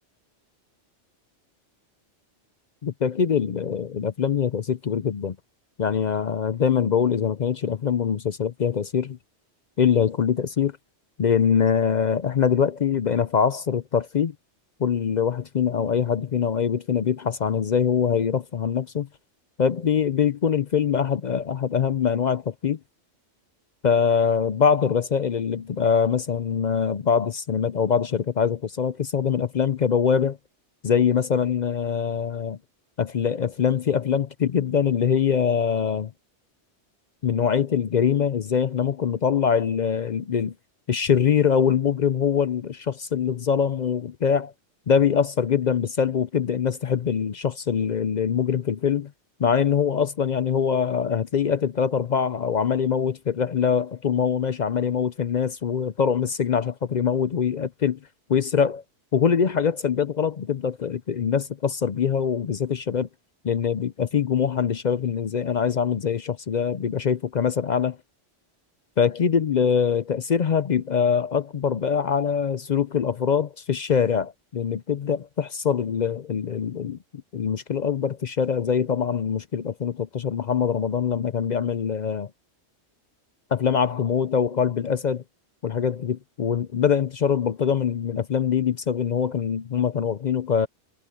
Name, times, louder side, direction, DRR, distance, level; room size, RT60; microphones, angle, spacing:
voice 1, 2.8-5.4 5.8-9.2 9.8-10.7 11.2-14.3 14.8-19.1 19.6-22.8 23.8-30.4 30.8-32.6 33.0-36.1 37.2-40.5 40.9-44.5 44.9-49.1 49.4-58.0 58.3-58.8 59.1-63.1 63.4-68.0 69.0-77.0 77.3-82.3 83.5-85.2 85.6-90.7, left 7 dB, 50° left, 0.6 m, -23 dB
omnidirectional pair, 1.2 m